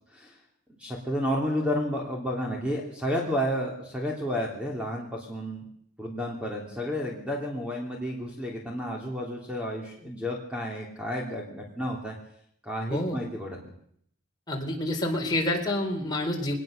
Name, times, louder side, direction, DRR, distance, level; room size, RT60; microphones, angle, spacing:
voice 1, 0.7-5.6 6.0-12.1 12.6-13.6, equal, 5° right, -1 dB, 3.2 m, -31 dB
voice 2, 12.9-13.2 14.5-16.5, left 1 dB, 20° left, 0 dB, 4.2 m, -28 dB
22.5 x 19.5 x 6.7 m, 0.68 s
head